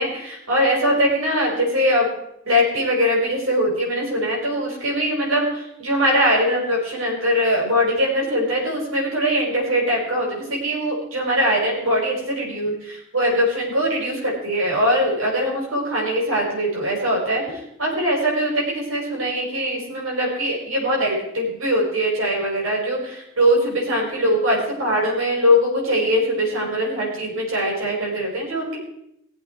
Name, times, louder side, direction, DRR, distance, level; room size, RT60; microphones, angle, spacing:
voice 1, 0.0-2.0 2.5-17.4 17.8-28.8, equal, 75° right, -2 dB, 5.8 m, -21 dB
20.0 x 8.0 x 4.7 m, 0.80 s
head